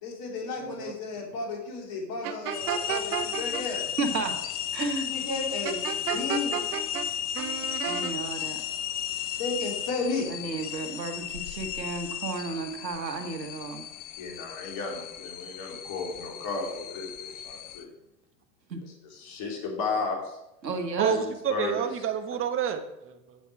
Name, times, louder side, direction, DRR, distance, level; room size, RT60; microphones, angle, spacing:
voice 1, 0.0-3.8 5.1-6.6 9.2-10.3 14.1-17.9 18.8-20.4 21.1-21.8, left 3 dB, 45° left, 0 dB, 3.1 m, -34 dB
voice 2, 0.6-0.9 21.0-23.4, right 7 dB, 25° right, 7 dB, 1.1 m, -29 dB
sound 1, 2.2-3.6 5.6-7.1 7.3-8.1, right 9 dB, 65° right, 1.0 m, -31 dB
sound 2, 2.5-17.8, left 10 dB, 20° left, 0.4 m, -35 dB
voice 3, 4.0-4.3 4.7-5.1 7.9-8.6 10.3-13.8 18.7-18.8 20.6-21.2, right 3 dB, 90° right, 6 dB, 1.6 m, -32 dB
9.1 x 7.3 x 4.7 m, 0.90 s
hypercardioid pair, 95°, 49 cm